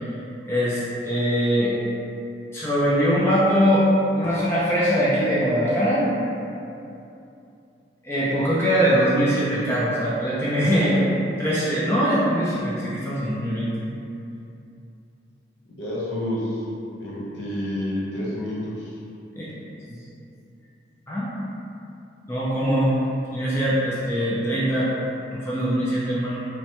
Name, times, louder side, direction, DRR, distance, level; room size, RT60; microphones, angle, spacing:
voice 1, 0.5-1.7 2.5-6.1 8.0-11.0 11.4-13.7 19.3-19.5 19.9-20.0 21.1-21.3 22.3-22.9 23.3-24.9 25.3-26.4, equal, 15° left, -8 dB, 0.3 m, -22 dB
voice 2, 15.7-16.6 17.0-18.9, left 1 dB, 65° left, -7 dB, 0.7 m, -29 dB
3.0 x 2.1 x 2.9 m, 2.7 s
head